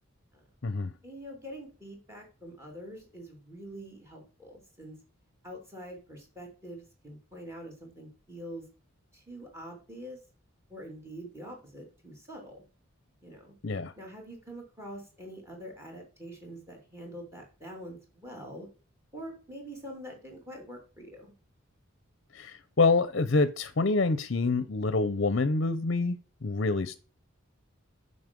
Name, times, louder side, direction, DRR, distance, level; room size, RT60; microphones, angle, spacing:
voice 1, 1.0-5.0 5.4-8.7 9.1-10.2 10.7-12.6 13.2-13.5 14.0-18.7 19.1-21.3, equal, 15° right, 2 dB, 2.7 m, -45 dB
voice 2, 22.3-27.0, left 3 dB, 55° left, 14 dB, 0.7 m, -27 dB
9.4 x 5.4 x 5.2 m, 0.35 s
head